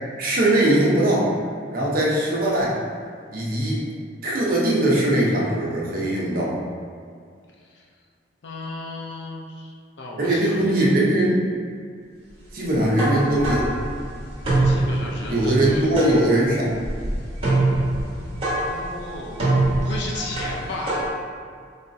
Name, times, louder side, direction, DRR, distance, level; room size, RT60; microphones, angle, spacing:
voice 1, 0.2-1.3 1.7-2.8 3.3-3.8 4.2-6.5 10.2-11.4 12.5-13.7 15.3-16.8, right 1 dB, 55° right, -5 dB, 0.8 m, -20 dB
voice 2, 7.6-7.9 8.4-11.0 14.6-16.0 18.6-19.4 19.8-21.0, left 2 dB, 75° left, -2 dB, 0.7 m, -34 dB
sound 1, 12.7-21.1, right 2 dB, 35° right, 1.2 m, -24 dB
4.2 x 3.2 x 2.7 m, 2.1 s
head